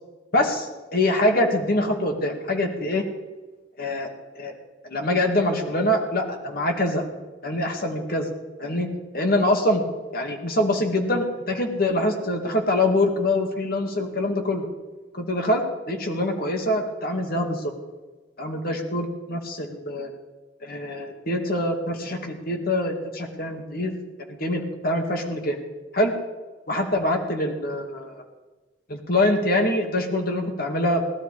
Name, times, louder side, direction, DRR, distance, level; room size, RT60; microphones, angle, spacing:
voice 1, 0.3-3.0 3.8-4.1 4.4-4.5 4.8-7.0 7.4-8.3 8.6-8.9 9.1-9.8 10.1-14.7 15.1-17.7 18.4-20.1 20.6-23.9 24.3-25.6 25.9-26.1 26.7-28.1 28.9-31.0, left 1 dB, 50° left, 3 dB, 2.2 m, -24 dB
18.5 x 12.0 x 4.9 m, 1.3 s
head